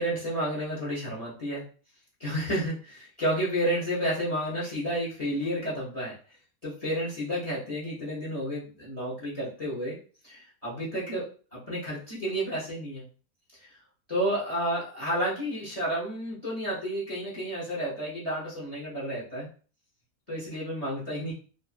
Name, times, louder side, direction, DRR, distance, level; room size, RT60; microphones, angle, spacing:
voice 1, 0.0-1.6 2.2-6.2 6.6-10.0 10.2-13.1 13.6-13.7 14.1-19.5 20.3-21.3, equal, 30° left, -6 dB, 0.9 m, -31 dB
2.5 x 2.5 x 2.4 m, 0.39 s
omnidirectional pair, 1.5 m